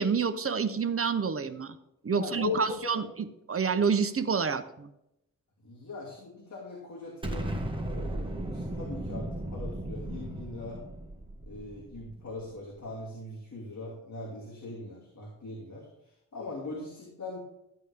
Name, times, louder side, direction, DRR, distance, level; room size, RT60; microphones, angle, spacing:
voice 1, 0.0-1.8 2.0-4.9, right 6 dB, 40° right, 10 dB, 0.8 m, -28 dB
voice 2, 2.1-3.0 5.6-7.5 7.8-10.8 11.5-17.4, left 3 dB, 55° left, -5 dB, 2.5 m, -40 dB
Explosion, 7.2-12.4, right 1 dB, 15° right, 1.4 m, -36 dB
13.0 x 8.3 x 3.4 m, 0.83 s
wide cardioid pair, 110°, 34 cm